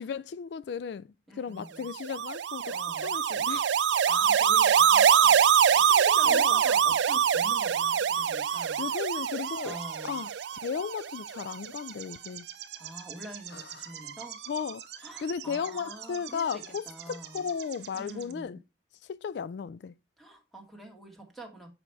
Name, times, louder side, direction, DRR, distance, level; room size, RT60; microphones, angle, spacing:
voice 1, 0.0-1.1 1.4-2.7 3.0-3.7 6.3-6.6 8.8-9.7 10.0-10.3 10.6-12.5 13.5-13.6 14.5-18.6 19.1-19.9, left 6 dB, 75° left, 0.3 m, -35 dB
voice 2, 1.3-1.9 2.7-3.1 4.1-8.9 9.6-10.2 12.8-14.4 15.0-17.5 17.9-18.6 20.2-21.7, right 1 dB, ahead, 1.9 m, -45 dB
sound 1, 1.9-11.2, right 8 dB, 90° right, 0.4 m, -24 dB
sound 2, 4.0-18.3, right 10 dB, 70° right, 1.0 m, -47 dB
8.3 x 5.1 x 4.6 m
head